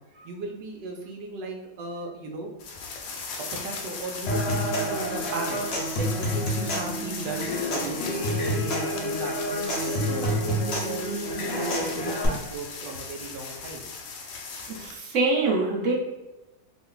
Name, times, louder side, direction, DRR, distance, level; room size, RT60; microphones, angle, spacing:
voice 1, 0.2-2.5 3.6-5.6 6.0-13.8, right 3 dB, 85° right, 2 dB, 1.3 m, -36 dB
sound 1, 2.6-15.0, left 4 dB, 75° left, 1.1 m, -38 dB
Human voice / Acoustic guitar / Percussion, 4.3-12.3, equal, 60° left, 0.6 m, -28 dB
voice 2, 14.7-15.9, right 3 dB, 55° right, -3 dB, 0.9 m, -24 dB
3.1 x 2.1 x 3.7 m, 1.0 s
omnidirectional pair, 1.9 m